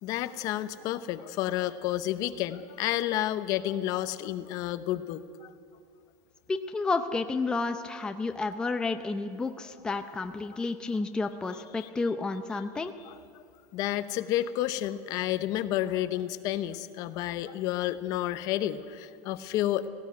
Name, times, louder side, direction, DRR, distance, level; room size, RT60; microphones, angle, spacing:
voice 1, 0.0-5.5 11.8-11.9 13.0-13.1 13.7-19.9, left 13 dB, 45° left, 12 dB, 0.8 m, -30 dB
voice 2, 6.5-12.9, left 3 dB, 10° left, 6 dB, 0.6 m, -31 dB
18.0 x 15.5 x 9.5 m, 2.3 s
supercardioid pair, 160°, 9 cm